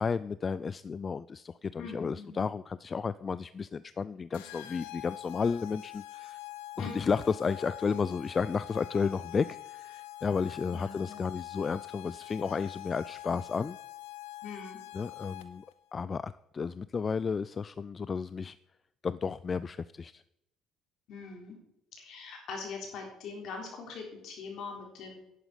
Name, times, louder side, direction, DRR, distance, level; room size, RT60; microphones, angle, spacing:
voice 1, 0.0-6.4 6.8-13.8 14.9-15.7 15.9-18.6 19.0-20.2, left 5 dB, 35° left, 16 dB, 0.3 m, -32 dB
voice 2, 1.8-2.4 6.8-7.2 10.7-11.2 14.4-14.8 21.1-21.6 22.0-25.2, left 4 dB, 65° left, 1 dB, 4.0 m, -42 dB
sound 1, 4.3-15.7, left 17 dB, 90° left, 0.8 m, -45 dB
11.0 x 9.1 x 5.1 m, 0.83 s
supercardioid pair, 70°, 0 cm